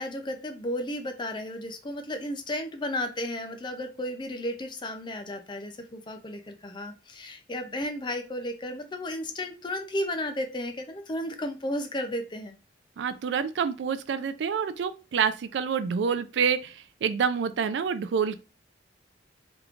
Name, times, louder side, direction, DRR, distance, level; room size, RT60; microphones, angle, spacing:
voice 1, 0.0-12.6, left 1 dB, 25° left, 0.5 m, -33 dB
voice 2, 13.0-16.7 17.0-18.4, right 6 dB, 80° right, 0.4 m, -27 dB
3.5 x 3.1 x 2.4 m
head